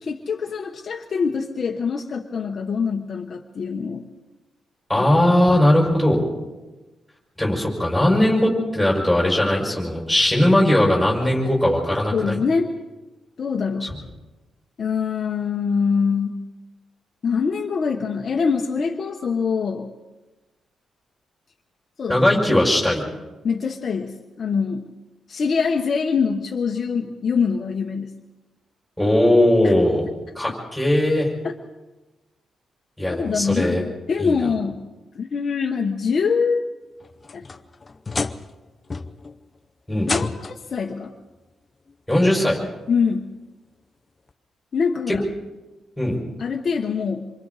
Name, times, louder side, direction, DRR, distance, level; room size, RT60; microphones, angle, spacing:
voice 1, 0.0-4.1 5.0-5.1 12.1-12.7 13.4-13.9 14.8-16.4 17.2-19.9 22.0-22.2 23.4-24.8 25.3-28.1 29.6-29.7 31.4-31.5 33.1-34.8 35.1-36.6 37.3-37.4 40.0-41.1 42.9-43.3 44.7-45.2 46.4-47.3, left 5 dB, 40° left, 2 dB, 1.2 m, -24 dB
voice 2, 4.9-6.2 7.4-12.4 13.8-13.9 22.1-23.0 29.0-30.1 30.3-31.3 33.0-33.8 34.2-34.4 39.9-40.1 42.1-42.6 45.1-45.2 46.0-46.2, left 1 dB, ahead, -3 dB, 6.1 m, -19 dB
sound 1, 37.0-38.6 38.9-39.4 40.0-40.7 41.9-42.0 42.6-42.7 44.3-44.4, left 4 dB, 25° left, 0.8 m, -30 dB
27.5 x 25.0 x 4.2 m, 1.1 s
wide cardioid pair, 165°, 0 cm